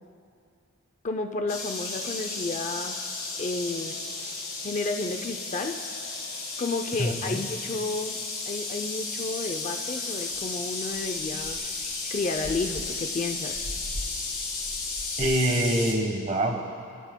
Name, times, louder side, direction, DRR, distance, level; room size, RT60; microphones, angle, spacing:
voice 1, 1.0-3.0 3.4-4.0 4.6-5.8 6.6-8.2 8.5-11.6 12.1-13.7, left 3 dB, 35° left, 6 dB, 0.5 m, -31 dB
sound 1, 1.5-15.9, left 3 dB, 80° left, 3.2 m, -34 dB
voice 2, 7.0-7.4 15.2-16.6, right 1 dB, 35° right, 3 dB, 1.2 m, -25 dB
sound 2, 10.3-10.4 10.9-15.9, equal, 80° right, 3.7 m, -42 dB
25.5 x 12.5 x 2.2 m, 2.4 s
head